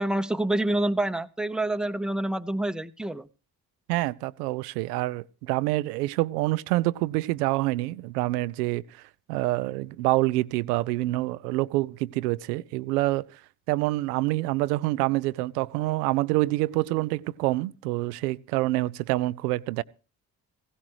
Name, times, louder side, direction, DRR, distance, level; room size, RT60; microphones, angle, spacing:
voice 1, 0.0-3.3, right 1 dB, ahead, 0.8 m, -27 dB
voice 2, 3.9-13.4 13.7-19.8, right 19 dB, 80° right, 0.6 m, -27 dB
16.5 x 16.5 x 3.1 m
hypercardioid pair, 45°, 47 cm